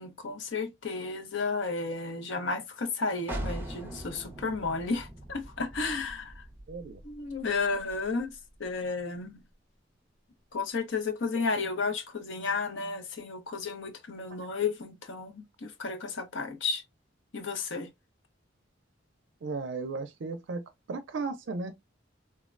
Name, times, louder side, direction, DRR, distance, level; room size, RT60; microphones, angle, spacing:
voice 1, 0.0-6.4 7.0-8.3 8.6-9.4 10.5-16.8 17.3-17.9, left 4 dB, 75° left, 0.6 m, -33 dB
sound 1, 3.3-8.8, right 1 dB, 10° right, 0.5 m, -42 dB
voice 2, 6.7-7.0 19.4-20.6 20.9-21.7, right 4 dB, 70° right, 0.4 m, -35 dB
3.4 x 2.1 x 2.4 m
head